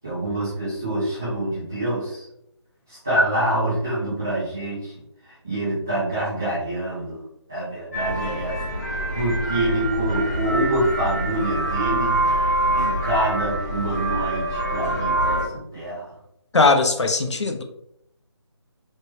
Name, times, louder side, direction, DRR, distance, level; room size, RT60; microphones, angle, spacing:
voice 1, 0.0-2.2 2.9-4.9 5.3-7.2 7.5-8.6 9.1-12.2 12.7-16.1, right 1 dB, 5° right, -11 dB, 0.3 m, -26 dB
sound 1, 7.9-15.5, right 1 dB, 35° left, 0.8 m, -25 dB
voice 2, 16.5-17.6, left 3 dB, 80° left, 5 dB, 0.5 m, -19 dB
3.1 x 2.2 x 3.0 m, 0.77 s
figure-of-eight pair, 165°, 15 cm